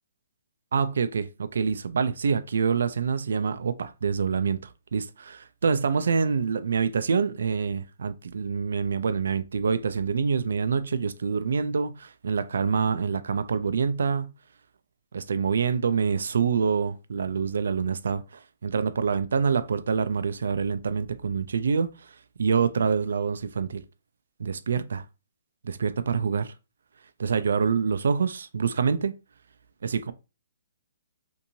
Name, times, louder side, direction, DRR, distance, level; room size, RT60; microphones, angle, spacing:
voice 1, 0.7-4.6 4.9-14.3 15.1-18.2 18.6-21.9 22.4-23.8 24.4-25.0 25.6-26.5 27.2-29.1 29.8-30.1, right 6 dB, 75° right, 0.3 m, -26 dB
2.8 x 2.6 x 2.6 m
hypercardioid pair, 150°, 0 cm